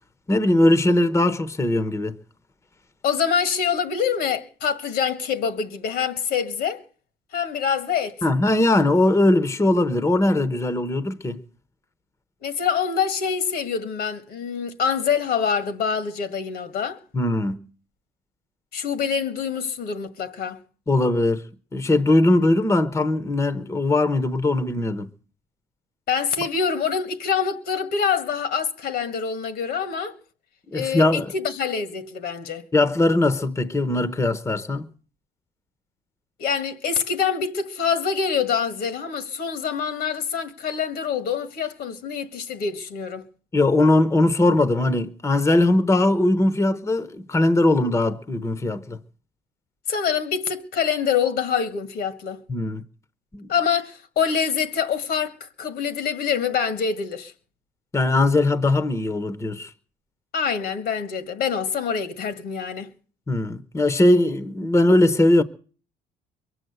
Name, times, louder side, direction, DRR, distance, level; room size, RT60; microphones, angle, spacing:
voice 1, 0.3-2.2 8.2-11.4 17.1-17.7 20.9-21.4 21.7-25.1 30.7-31.3 32.7-34.9 43.5-49.0 52.5-52.8 53.3-53.5 57.9-59.7 63.3-65.4, left 2 dB, 15° left, 1.0 m, -20 dB
voice 2, 3.0-6.8 7.3-8.2 12.4-17.0 18.7-20.6 26.1-30.2 30.7-32.7 36.4-43.3 49.9-52.4 53.5-57.3 60.3-62.9, left 7 dB, 70° left, 1.9 m, -25 dB
22.5 x 7.8 x 8.1 m
cardioid pair, 110°, 17 cm